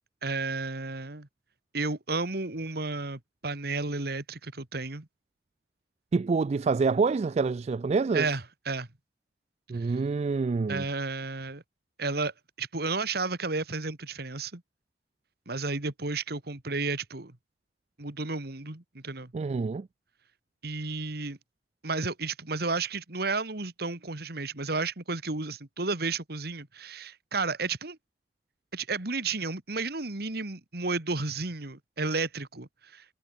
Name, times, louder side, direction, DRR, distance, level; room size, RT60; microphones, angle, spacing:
voice 1, 0.2-1.3 1.7-5.1 8.1-8.9 9.7-9.9 10.7-11.6 12.0-14.6 15.5-17.4 18.0-19.3 20.6-21.4 21.8-28.0 28.7-33.0, right 3 dB, 60° right, 2.1 m, -32 dB
voice 2, 6.1-8.3 9.7-10.8 19.3-19.9, right 4 dB, 35° right, 0.3 m, -26 dB
head